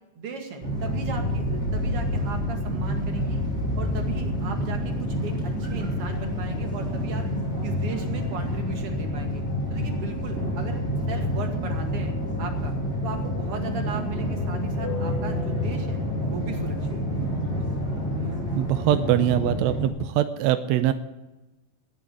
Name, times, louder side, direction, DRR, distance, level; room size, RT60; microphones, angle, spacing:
voice 1, 0.2-3.4 3.8-7.3 7.6-9.4 9.7-10.8 11.1-12.7 13.0-16.0 16.3-17.3, right 5 dB, 50° right, 4 dB, 2.7 m, -37 dB
sound 1, 0.6-19.9, left 1 dB, 20° right, 3.8 m, -28 dB
voice 2, 18.5-20.9, right 12 dB, 80° right, 10 dB, 1.6 m, -23 dB
18.5 x 6.4 x 9.8 m, 1.1 s
omnidirectional pair, 3.8 m